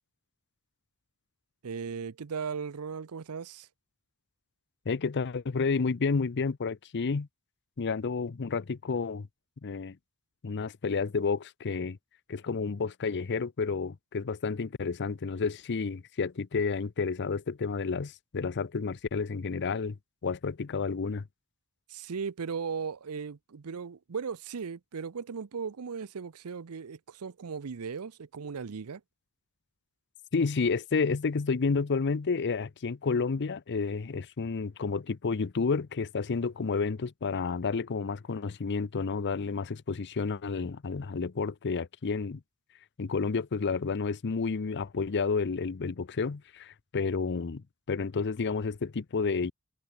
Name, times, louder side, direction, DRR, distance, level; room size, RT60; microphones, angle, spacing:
voice 1, 1.6-3.7 21.9-29.0, right 5 dB, 80° right, 0.6 m, -37 dB
voice 2, 4.9-7.3 7.8-9.3 9.6-10.0 10.4-12.0 12.3-20.0 20.2-21.2 30.3-42.4 43.0-49.5, left 4 dB, 55° left, 0.6 m, -30 dB
head